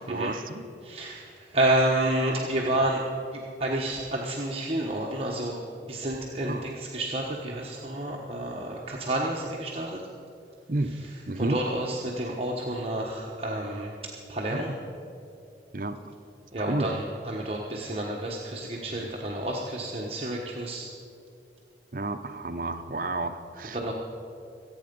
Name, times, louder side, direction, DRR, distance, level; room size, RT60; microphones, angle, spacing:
voice 1, 0.1-0.6 2.6-2.8 6.4-6.7 10.7-11.0 11.3-11.6 14.5-14.7 15.7-16.0 16.6-17.0 18.9-19.1 21.9-23.9, right 2 dB, 50° right, 8 dB, 0.7 m, -31 dB
voice 2, 0.8-3.0 3.3-5.6 5.9-10.0 11.4-14.7 16.5-20.9 23.7-23.9, right 1 dB, 35° right, -2 dB, 1.2 m, -30 dB
25.5 x 8.8 x 5.3 m, 2.7 s
head